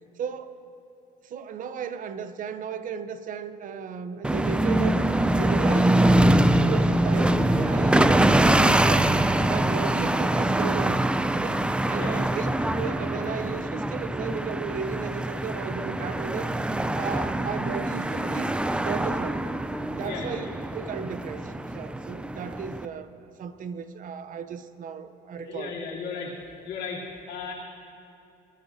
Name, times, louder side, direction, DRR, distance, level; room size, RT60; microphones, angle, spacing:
voice 1, 0.2-0.6 1.2-9.1 9.4-11.1 11.3-12.5 12.7-16.5 16.9-18.5 18.8-19.4 19.9-20.5 20.7-23.1 23.4-25.7, right 6 dB, 50° right, 11 dB, 0.6 m, -35 dB
sound 1, 4.2-22.9, right 1 dB, 5° right, 0.4 m, -24 dB
voice 2, 11.9-12.3 20.0-20.5 25.3-26.4 26.6-27.5, left 5 dB, 75° left, -5 dB, 3.0 m, -36 dB
21.5 x 13.5 x 2.6 m, 2.8 s
cardioid pair, 110°, 17 cm